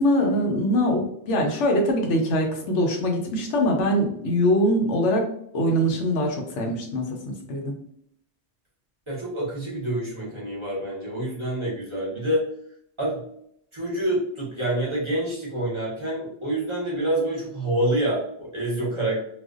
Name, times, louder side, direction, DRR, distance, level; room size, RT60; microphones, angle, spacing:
voice 1, 0.0-5.3 5.5-7.7, equal, 90° left, 2 dB, 0.9 m, -23 dB
voice 2, 9.1-12.4 13.0-13.2 13.7-19.2, right 1 dB, 30° right, -6 dB, 0.7 m, -27 dB
2.4 x 2.1 x 2.4 m, 0.71 s
omnidirectional pair, 1.2 m